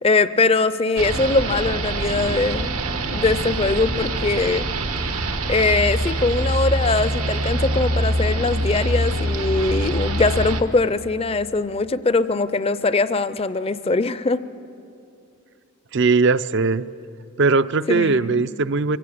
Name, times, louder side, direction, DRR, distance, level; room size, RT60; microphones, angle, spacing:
voice 1, 0.0-2.8 3.1-4.7 5.5-14.4 17.9-18.4, left 3 dB, 25° left, 14 dB, 0.5 m, -21 dB
sound 1, 1.0-10.6, right 1 dB, 85° right, 1.4 m, -24 dB
voice 2, 15.9-16.9 17.4-19.0, right 4 dB, 50° right, 15 dB, 0.5 m, -19 dB
24.5 x 16.0 x 8.6 m, 2.6 s
head